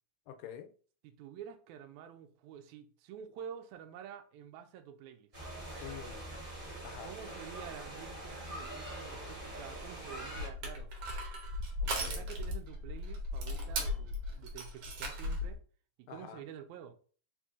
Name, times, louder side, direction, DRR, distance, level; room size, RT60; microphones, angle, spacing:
voice 1, 0.3-0.7 5.8-6.4 6.8-7.1 11.8-12.3 16.1-16.4, left 9 dB, 85° left, 2.1 m, -47 dB
voice 2, 1.0-5.3 7.0-10.9 11.8-15.6 16.0-16.9, right 8 dB, 90° right, 1.6 m, -49 dB
sound 1, 5.3-10.5, right 1 dB, 25° right, 1.1 m, -44 dB
Crushing, 10.3-15.5, left 1 dB, 75° right, 1.4 m, -37 dB
4.3 x 4.1 x 2.4 m
omnidirectional pair, 3.9 m